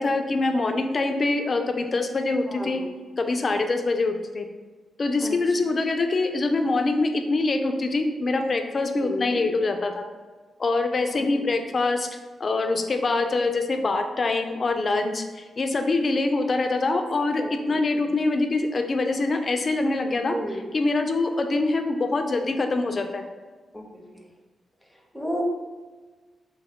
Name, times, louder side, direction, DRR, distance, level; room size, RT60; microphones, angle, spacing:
voice 1, 0.0-2.8 3.2-4.5 5.0-10.0 10.6-12.1 12.4-23.2, left 3 dB, 50° left, 6 dB, 0.4 m, -24 dB
voice 2, 2.5-2.9 5.2-5.4 9.0-9.4 11.1-11.3 17.4-17.5 20.3-20.7 23.7-23.9 25.1-25.4, equal, 5° left, 1 dB, 0.7 m, -31 dB
2.8 x 2.2 x 3.6 m, 1.3 s
supercardioid pair, 55°, 0 cm